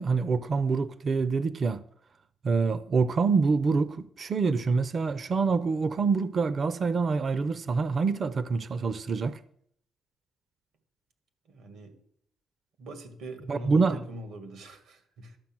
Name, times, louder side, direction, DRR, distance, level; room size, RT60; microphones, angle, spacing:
voice 1, 0.0-1.8 2.4-9.4 13.5-14.0, right 4 dB, 45° right, 0.5 m, -26 dB
voice 2, 11.5-11.9 12.8-15.4, right 1 dB, 80° right, 2.0 m, -42 dB
12.0 x 7.0 x 6.1 m
cardioid pair, 90°, 0 cm